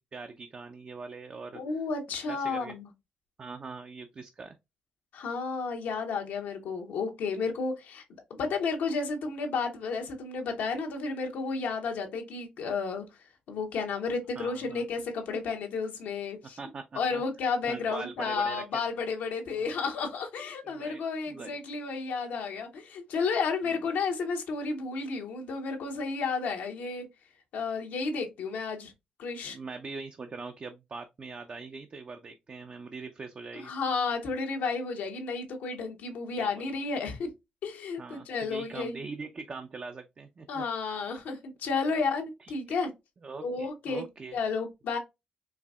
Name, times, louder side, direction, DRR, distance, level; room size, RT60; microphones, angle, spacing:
voice 1, 0.1-1.6 2.3-2.7 3.4-4.6 14.4-14.8 16.6-17.2 17.7-18.6 19.6-19.7 20.6-21.0 21.3-21.6 23.7-23.8 29.5-33.7 36.4-36.7 38.0-41.1 41.9-42.0 42.4-42.5 43.2-44.4, right 4 dB, 45° right, 0.5 m, -42 dB
voice 2, 1.5-2.9 5.1-8.0 8.3-13.1 13.5-16.6 16.9-27.1 27.5-28.9 29.2-29.6 33.5-37.3 37.6-39.0 40.5-42.9 43.4-44.0 44.3-45.0, left 4 dB, 85° left, 0.9 m, -32 dB
4.6 x 2.6 x 2.3 m
cardioid pair, 65°, 3 cm